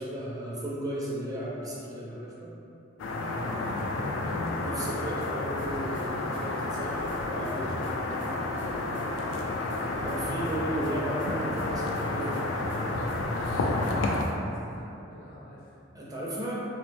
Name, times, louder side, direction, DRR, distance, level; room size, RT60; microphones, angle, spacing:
voice 1, 0.0-2.6 4.6-9.0 9.9-12.9 13.2-14.3 15.9-16.7, right 1 dB, 20° right, -6 dB, 0.4 m, -36 dB
sound 1, 3.0-14.2, left 2 dB, 90° left, 0.3 m, -30 dB
voice 2, 3.2-4.2 14.2-15.8, equal, 50° left, -7 dB, 0.7 m, -47 dB
sound 2, 5.0-5.3 5.6-8.3 8.6-10.9 11.2-11.3 11.6-14.3, right 1 dB, 75° right, 0.6 m, -50 dB
2.8 x 2.0 x 3.1 m, 2.7 s
head